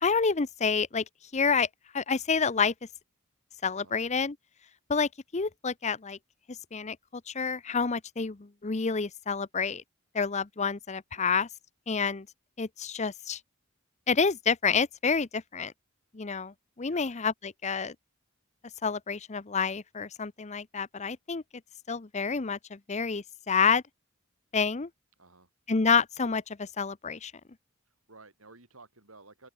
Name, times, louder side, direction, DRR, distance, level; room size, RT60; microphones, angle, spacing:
voice 1, 0.0-1.0 1.3-1.7 1.9-2.7 3.6-4.3 4.9-6.2 6.7-9.8 10.1-11.5 11.9-12.3 12.6-13.4 14.1-15.7 16.1-17.9 18.8-21.4 21.9-23.8 24.5-24.9 25.7-27.3, left 5 dB, 35° left, 0.7 m, -28 dB
voice 2, 25.2-25.5 27.9-29.5, right 3 dB, 85° right, 6.4 m, -54 dB
open air
head